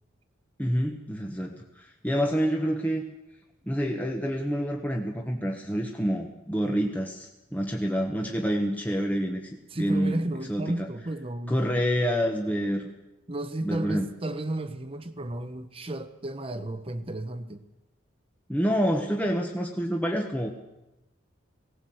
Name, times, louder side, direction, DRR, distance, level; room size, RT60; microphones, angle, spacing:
voice 1, 0.6-3.0 3.7-9.5 9.8-10.2 10.5-10.9 11.5-12.9 13.6-14.1 18.5-20.5, equal, 10° left, 1 dB, 1.4 m, -27 dB
voice 2, 9.7-11.6 13.3-17.6, right 1 dB, 25° right, 9 dB, 1.1 m, -33 dB
19.0 x 18.0 x 7.9 m, 0.97 s
head